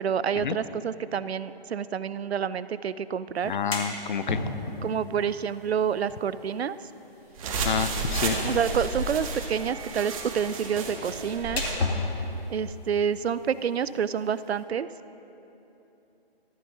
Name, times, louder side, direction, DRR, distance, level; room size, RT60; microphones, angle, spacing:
voice 1, 0.0-3.5 4.8-6.8 8.4-11.6 12.5-14.9, right 7 dB, 85° right, 16 dB, 0.6 m, -28 dB
sound 1, 3.4-14.6, left 3 dB, 75° left, 2.4 m, -37 dB
voice 2, 3.4-4.4 7.6-8.4, left 7 dB, 50° left, 12 dB, 0.6 m, -29 dB
sound 2, 7.4-11.8, right 3 dB, 35° right, 1.6 m, -31 dB
13.0 x 11.0 x 5.3 m, 3.0 s
hypercardioid pair, 155°, 31 cm